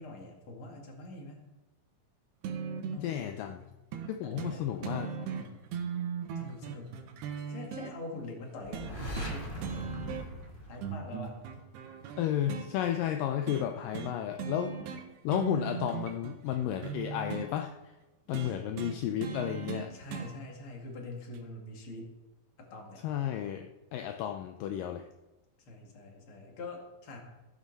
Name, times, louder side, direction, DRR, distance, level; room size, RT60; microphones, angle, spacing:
voice 1, 0.0-1.4 2.9-3.6 4.2-5.6 6.4-7.0 7.3-9.9 10.6-11.4 15.5-16.0 18.3-18.6 19.9-22.1 22.6-23.0 25.6-27.2, left 2 dB, 40° left, 1 dB, 2.4 m, -45 dB
sound 1, 2.4-3.1 3.9-4.1 4.4-4.6 4.8-7.9 8.7-9.4 9.6-10.5 10.8-12.7 13.5-13.7 13.9-14.1 14.4-15.0 15.3-17.5 18.3-20.3 21.3-21.4, right 7 dB, 80° right, 3.2 m, -38 dB
voice 2, 3.0-3.6 4.1-5.1 12.2-14.7 15.2-17.7 18.3-19.9 23.0-23.7 23.9-25.1, left 11 dB, 80° left, 5 dB, 2.0 m, -32 dB
sound 2, 8.6-11.5, equal, 20° left, 1.3 m, -40 dB
14.5 x 12.5 x 4.1 m, 1.0 s
omnidirectional pair, 4.6 m